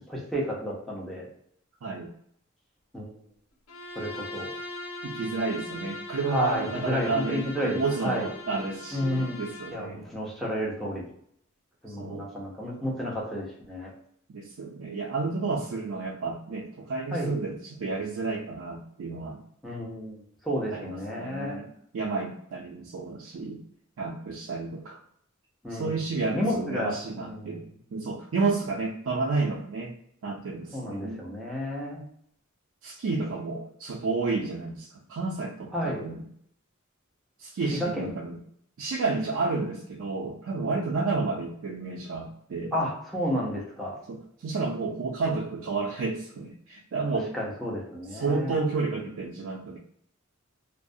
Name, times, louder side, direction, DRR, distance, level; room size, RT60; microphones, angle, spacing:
voice 1, 0.1-1.3 2.9-3.1 4.0-4.5 6.3-8.3 8.9-9.4 9.7-11.1 11.8-13.9 17.1-17.3 19.6-21.6 25.6-26.0 26.3-27.7 30.7-32.0 35.7-36.0 37.8-38.1 42.7-44.0 47.3-48.5, equal, ahead, -4 dB, 0.6 m, -31 dB
Bowed string instrument, 3.7-9.9, left 2 dB, 70° left, 0.5 m, -40 dB
voice 2, 5.0-10.0 11.9-12.3 14.3-19.4 20.7-21.6 21.9-23.6 24.0-25.0 25.7-27.7 27.9-30.0 30.2-31.3 32.8-36.2 37.4-38.4 38.8-42.7 44.1-47.3 48.1-49.8, right 3 dB, 70° right, -3 dB, 0.4 m, -31 dB
2.3 x 2.0 x 2.6 m, 0.68 s
head